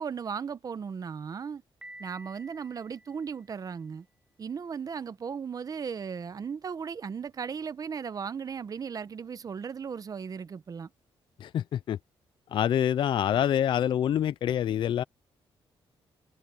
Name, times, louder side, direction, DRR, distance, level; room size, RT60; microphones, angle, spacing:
voice 1, 0.0-1.6 2.0-4.1 4.4-10.9, right 6 dB, 40° right, 0.9 m, -36 dB
Piano, 1.8-3.8, right 1 dB, 10° right, 0.9 m, -51 dB
voice 2, 11.4-12.0 12.5-15.0, left 10 dB, 55° left, 0.4 m, -26 dB
cardioid pair, 120°, 10 cm